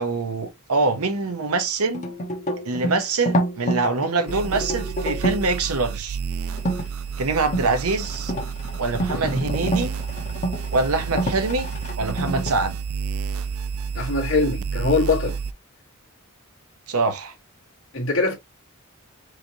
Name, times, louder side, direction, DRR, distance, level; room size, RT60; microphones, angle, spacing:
voice 1, 0.0-2.1 2.6-6.2 7.2-8.3 8.8-9.9 10.7-11.7 12.0-12.8 16.9-17.3, right 3 dB, 90° right, 0.9 m, -24 dB
sound 1, 1.9-5.5 6.5-6.8 7.4-12.5, right 1 dB, 35° left, 1.1 m, -28 dB
sound 2, 4.3-15.5, right 6 dB, 70° right, 0.3 m, -30 dB
voice 2, 13.9-15.4 17.9-18.3, left 3 dB, 60° left, 1.7 m, -22 dB
4.8 x 3.2 x 2.8 m
head